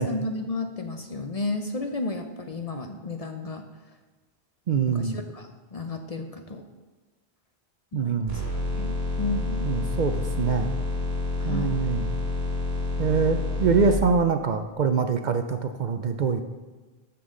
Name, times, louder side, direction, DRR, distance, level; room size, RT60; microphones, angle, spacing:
voice 1, 0.0-3.7 4.9-6.6 7.9-8.4 8.7-9.7 11.4-11.8, left 2 dB, 40° left, 6 dB, 0.6 m, -33 dB
voice 2, 4.7-5.2 7.9-8.4 9.6-10.7 11.4-12.1 13.0-16.4, right 5 dB, 55° right, 7 dB, 0.6 m, -24 dB
sound 1, 8.3-14.0, left 2 dB, 85° right, 3.1 m, -28 dB
12.5 x 7.2 x 3.7 m, 1.3 s
omnidirectional pair, 1.0 m